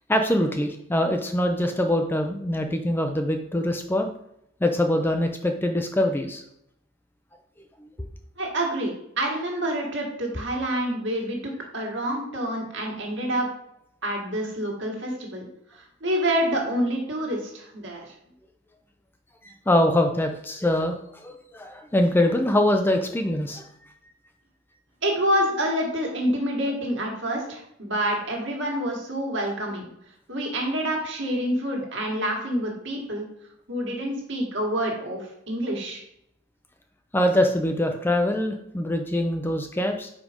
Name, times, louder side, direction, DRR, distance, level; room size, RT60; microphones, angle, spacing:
voice 1, 0.1-4.1 4.6-6.4 7.8-7.9 19.7-23.6 37.1-40.1, left 1 dB, 10° left, 5 dB, 0.4 m, -23 dB
voice 2, 8.4-13.5 14.0-15.5 15.7-18.0 25.0-29.9 30.3-33.2 33.7-36.0, equal, 60° right, 0 dB, 1.8 m, -27 dB
5.0 x 4.9 x 5.1 m, 0.77 s
head